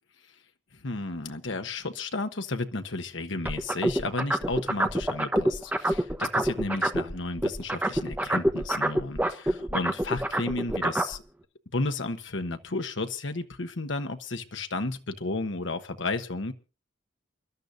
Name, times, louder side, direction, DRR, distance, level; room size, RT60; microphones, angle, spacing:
voice 1, 0.8-11.2 11.7-16.5, left 3 dB, 75° left, 7 dB, 1.1 m, -33 dB
sound 1, 3.5-7.1 7.4-11.2, right 1 dB, 10° right, 1.0 m, -26 dB
28.5 x 12.0 x 2.6 m, 0.32 s
head